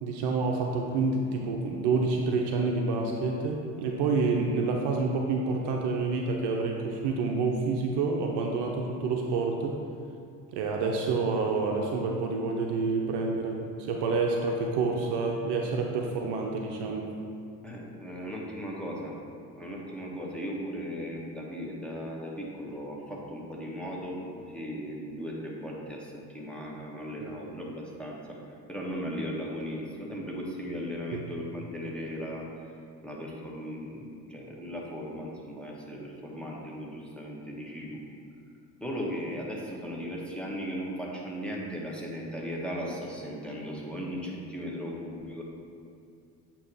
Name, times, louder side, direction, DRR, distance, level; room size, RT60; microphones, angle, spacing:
voice 1, 0.0-9.8 10.5-17.1 27.2-27.3 31.1-31.2, right 4 dB, 55° right, 1 dB, 0.8 m, -28 dB
voice 2, 17.6-19.2 19.5-28.4 28.7-32.4 33.0-38.0 38.8-45.4, equal, ahead, -4 dB, 1.4 m, -37 dB
8.3 x 3.0 x 4.7 m, 2.4 s
figure-of-eight pair, 55°, 50 cm